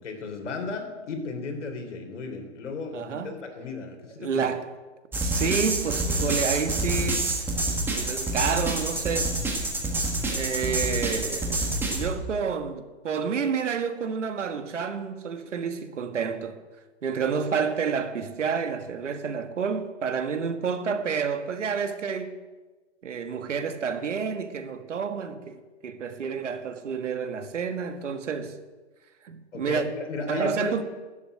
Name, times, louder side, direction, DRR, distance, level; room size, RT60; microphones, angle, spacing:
voice 1, 0.0-4.5 29.5-30.8, left 4 dB, 80° left, 3.7 m, -35 dB
voice 2, 2.9-3.4 4.2-4.7 5.2-7.4 7.9-9.4 10.3-16.6 17.0-22.3 23.0-28.6 29.2-29.9 30.3-30.8, right 6 dB, 90° right, 1.7 m, -29 dB
sound 1, 5.1-12.1, right 2 dB, 5° right, 1.5 m, -27 dB
12.5 x 7.7 x 9.1 m
hypercardioid pair, 160°, 35 cm